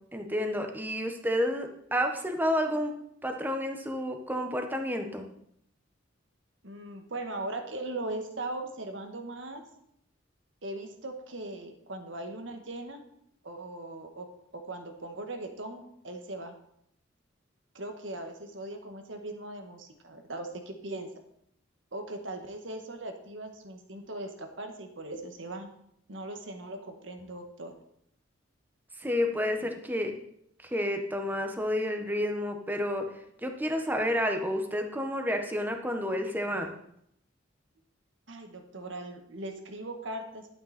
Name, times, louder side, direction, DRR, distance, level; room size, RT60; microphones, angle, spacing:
voice 1, 0.1-2.9 3.2-5.2 29.0-30.1 30.7-33.0 33.4-36.7, equal, 10° right, 4 dB, 1.2 m, -30 dB
voice 2, 6.6-9.7 10.6-13.0 13.4-14.3 14.5-16.5 17.7-21.1 21.9-25.7 26.1-27.7 38.3-40.5, right 2 dB, 70° right, 5 dB, 1.6 m, -39 dB
11.5 x 8.8 x 4.3 m, 0.73 s
head